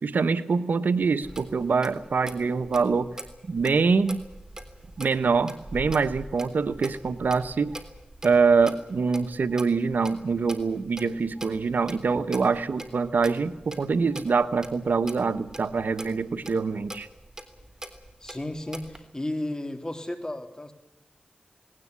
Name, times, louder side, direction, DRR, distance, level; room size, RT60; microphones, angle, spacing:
voice 1, 0.0-3.1 3.5-4.2 5.0-7.7 8.2-17.1, right 4 dB, 80° right, 12 dB, 1.1 m, -24 dB
Clock, 1.2-19.0, right 1 dB, 20° right, 3.6 m, -43 dB
voice 2, 18.2-20.7, left 1 dB, 25° left, 7 dB, 3.5 m, -33 dB
19.5 x 19.0 x 9.6 m, 0.95 s
cardioid pair, 50°, 3 cm